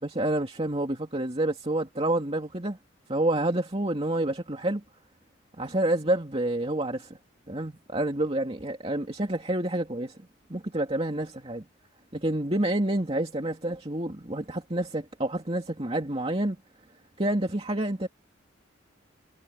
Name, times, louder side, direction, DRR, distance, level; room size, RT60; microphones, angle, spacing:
voice 1, 0.0-2.8 3.1-4.8 5.6-7.2 7.5-10.2 10.5-11.6 12.1-16.6 17.2-18.1, right 1 dB, 30° right, 2.6 m, -28 dB
head